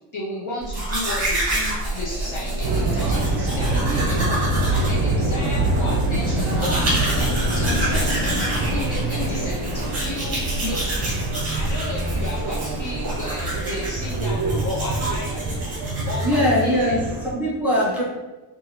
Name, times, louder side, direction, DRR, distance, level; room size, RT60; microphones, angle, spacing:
voice 1, 0.1-8.4 8.7-11.2 11.5-15.4 15.8-17.0, left 2 dB, 40° left, -4 dB, 0.5 m, -33 dB
Domestic sounds home sounds, 0.6-16.7, right 1 dB, 30° right, 1.3 m, -28 dB
sound 1, 2.2-11.8, left 2 dB, 85° left, 0.7 m, -33 dB
sound 2, 2.6-17.3, right 2 dB, 50° right, 0.6 m, -25 dB
voice 2, 16.2-18.0, equal, 5° right, -8 dB, 0.7 m, -21 dB
3.8 x 2.4 x 2.8 m, 1.1 s
cardioid pair, 170°, 49 cm